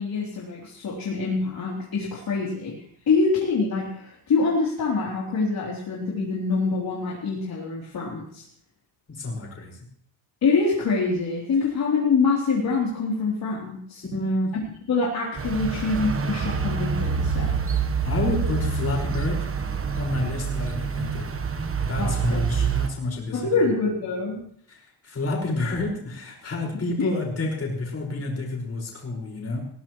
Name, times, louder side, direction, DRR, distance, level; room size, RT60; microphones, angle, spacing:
voice 1, 0.0-2.7 3.1-8.4 10.4-14.0 14.9-17.5 22.0-22.4 23.3-24.4 27.0-27.1, left 4 dB, 50° left, -5 dB, 3.5 m, -25 dB
voice 2, 9.1-9.8 14.0-14.5 18.0-19.4 20.0-21.3 21.9-23.7 24.7-29.6, left 2 dB, 30° left, -1 dB, 5.4 m, -29 dB
sound 1, 15.4-22.9, right 5 dB, 30° right, 1.2 m, -26 dB
20.0 x 17.5 x 3.2 m, 0.64 s
cardioid pair, 155°, 47 cm